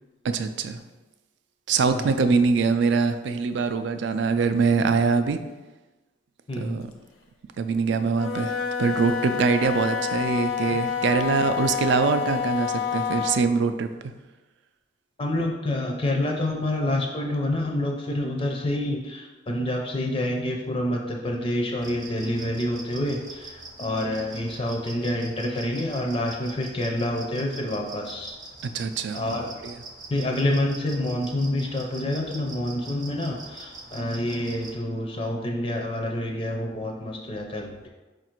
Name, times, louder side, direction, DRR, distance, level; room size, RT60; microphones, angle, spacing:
voice 1, 0.2-0.8 1.7-5.4 6.6-6.9 7.6-14.1 28.7-29.2 29.6-29.7, right 4 dB, 65° right, 9 dB, 0.3 m, -23 dB
voice 2, 6.5-6.8 10.7-10.8 15.2-28.4 29.1-29.6 30.1-37.9, left 1 dB, 25° left, 1 dB, 0.4 m, -28 dB
Wind instrument woodwind instrument, 8.1-13.5, left 7 dB, 90° left, 0.5 m, -28 dB
sound 1, 21.8-34.7, right 3 dB, 40° right, 0.7 m, -43 dB
4.8 x 2.5 x 4.4 m, 1.2 s
head